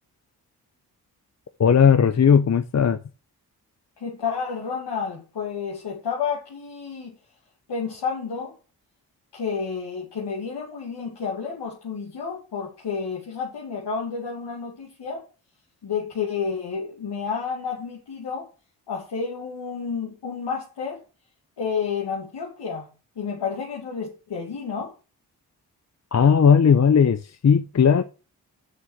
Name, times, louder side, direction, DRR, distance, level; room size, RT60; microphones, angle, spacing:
voice 1, 1.6-3.0 26.1-28.0, left 7 dB, 40° left, 0.7 m, -17 dB
voice 2, 4.0-7.1 7.7-8.5 9.3-15.2 15.8-18.5 18.9-21.0 21.6-22.9 23.2-24.9, left 6 dB, 75° left, 2.5 m, -30 dB
7.6 x 6.3 x 6.5 m
supercardioid pair, 45°, 41 cm